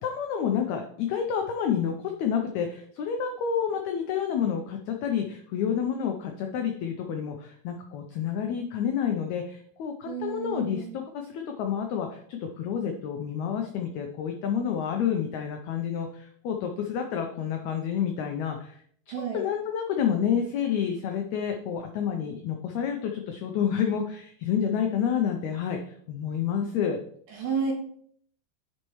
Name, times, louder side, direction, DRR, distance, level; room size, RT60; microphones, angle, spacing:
voice 1, 0.0-18.8 19.3-27.0, left 8 dB, 85° left, 4 dB, 1.6 m, -29 dB
voice 2, 10.0-11.0 19.1-19.4 27.3-27.7, right 6 dB, 70° right, -2 dB, 3.1 m, -31 dB
9.9 x 4.3 x 3.0 m, 0.62 s
omnidirectional pair, 4.0 m